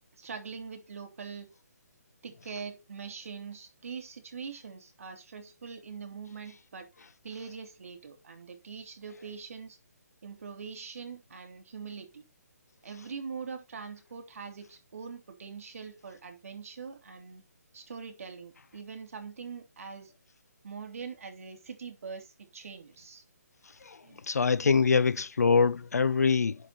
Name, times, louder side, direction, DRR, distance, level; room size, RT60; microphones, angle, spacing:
voice 1, 0.2-1.5 2.2-6.9 7.2-9.8 10.2-12.2 12.8-17.4 17.7-20.1 20.6-23.2 24.0-24.2, right 5 dB, 60° right, 2.7 m, -43 dB
voice 2, 24.3-26.6, left 5 dB, 70° left, 0.4 m, -24 dB
10.5 x 4.9 x 4.2 m
figure-of-eight pair, 140°, 9 cm